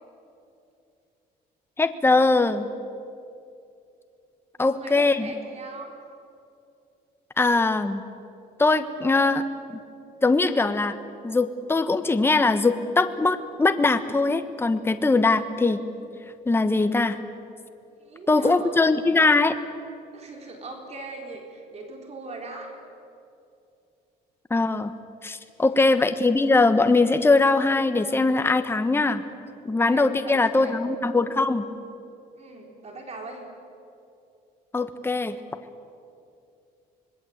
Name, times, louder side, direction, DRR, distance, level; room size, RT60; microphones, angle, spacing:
voice 1, 1.8-2.7 4.6-5.3 7.4-8.0 8.6-9.4 9.7-9.8 10.2-10.9 11.2-15.8 16.5-17.2 18.3-19.5 24.5-24.9 25.2-29.2 29.6-31.6 34.7-35.4, left 3 dB, 15° left, 9 dB, 1.2 m, -21 dB
voice 2, 4.6-5.9 18.0-18.7 20.1-22.7 25.6-25.9 29.9-30.8 32.4-33.4, right 2 dB, 40° right, 2 dB, 4.1 m, -40 dB
26.0 x 20.5 x 8.0 m, 2.6 s
cardioid pair, 110°, 17 cm